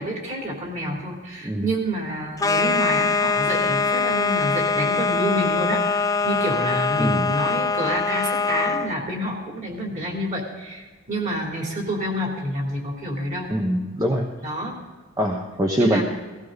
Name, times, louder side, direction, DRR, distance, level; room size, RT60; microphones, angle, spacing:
voice 1, 0.0-13.5 14.4-14.8 15.8-16.0, equal, 35° right, 0 dB, 3.4 m, -28 dB
sound 1, 2.4-8.9, left 4 dB, 15° left, 0.5 m, -23 dB
voice 2, 7.0-7.3 13.5-14.3 15.2-16.0, equal, 20° right, 1 dB, 1.0 m, -23 dB
17.0 x 16.0 x 4.0 m, 1.3 s
head